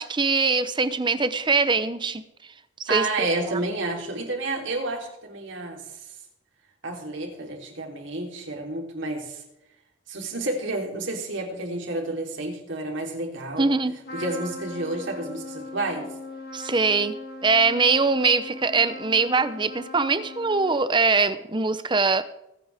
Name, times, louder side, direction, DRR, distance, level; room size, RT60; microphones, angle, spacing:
voice 1, 0.0-2.2 2.9-3.3 13.6-13.9 16.5-17.1 17.4-22.2, right 4 dB, 25° right, 12 dB, 0.7 m, -22 dB
voice 2, 2.9-5.8 6.8-9.4 10.1-13.7 14.1-16.1, right 2 dB, 70° right, 1 dB, 3.4 m, -30 dB
Trumpet, 14.0-21.0, left 2 dB, 50° left, 2.7 m, -40 dB
24.5 x 9.4 x 3.5 m, 0.87 s
head